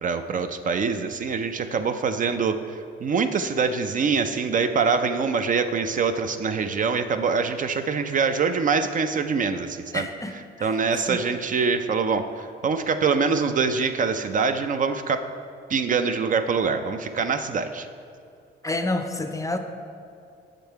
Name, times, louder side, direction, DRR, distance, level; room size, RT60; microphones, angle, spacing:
voice 1, 0.0-10.1 10.6-15.2 15.7-17.9, right 5 dB, 40° right, 8 dB, 0.4 m, -24 dB
voice 2, 9.9-10.7 11.1-11.2 18.6-19.6, left 2 dB, 15° left, 7 dB, 0.5 m, -29 dB
6.4 x 5.2 x 4.5 m, 2.5 s
cardioid pair, 90°, 20 cm